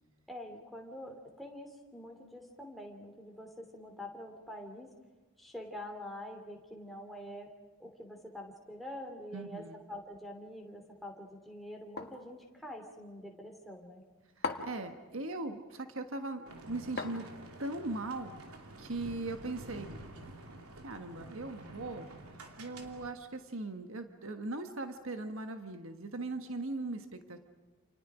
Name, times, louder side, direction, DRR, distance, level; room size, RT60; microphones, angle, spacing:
voice 1, 0.3-4.9 5.4-7.5 7.8-14.0, left 1 dB, ahead, 1 dB, 3.1 m, -46 dB
voice 2, 9.3-9.8 14.4-17.2 17.6-18.3 18.8-20.0 20.8-22.1 22.6-27.4, right 2 dB, 65° right, 7 dB, 1.5 m, -39 dB
sound 1, 12.0-12.3 14.4-14.9 17.0-17.6, left 3 dB, 50° left, 1.8 m, -38 dB
sound 2, 16.5-23.1, right 2 dB, 85° right, 2.8 m, -49 dB
29.5 x 28.5 x 5.0 m, 1.3 s
head